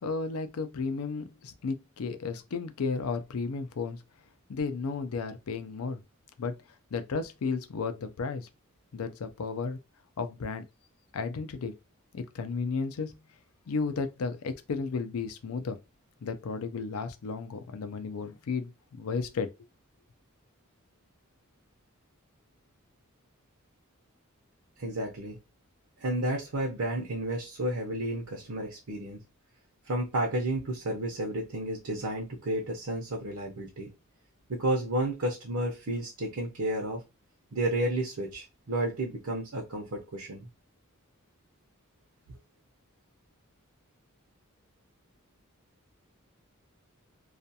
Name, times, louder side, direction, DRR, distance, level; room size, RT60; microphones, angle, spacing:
voice 1, 0.0-4.0 4.5-6.0 6.4-6.6 6.9-8.5 8.9-9.8 10.2-10.6 11.1-11.7 12.1-13.2 13.7-15.8 16.2-19.5, left 4 dB, 80° left, 0.5 m, -33 dB
voice 2, 24.8-25.4 26.0-29.2 29.8-33.9 34.5-37.0 37.5-40.5, right 1 dB, 75° right, 0.7 m, -31 dB
2.4 x 2.2 x 2.7 m
head